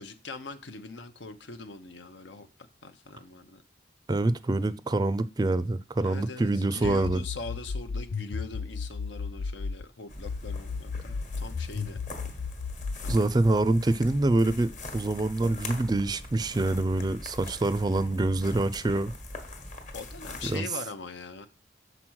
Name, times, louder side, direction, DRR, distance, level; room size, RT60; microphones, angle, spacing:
voice 1, 0.0-2.5 2.8-3.6 6.0-12.0 13.0-13.3 19.9-21.5, left 3 dB, 85° left, 0.8 m, -41 dB
voice 2, 4.1-7.2 13.1-19.1 20.4-20.7, right 2 dB, 20° right, 0.4 m, -26 dB
sound 1, 6.8-9.8 10.3-13.3, left 5 dB, 60° left, 0.4 m, -34 dB
sound 2, 10.1-20.6, left 2 dB, 40° left, 1.2 m, -42 dB
6.0 x 4.0 x 6.2 m
head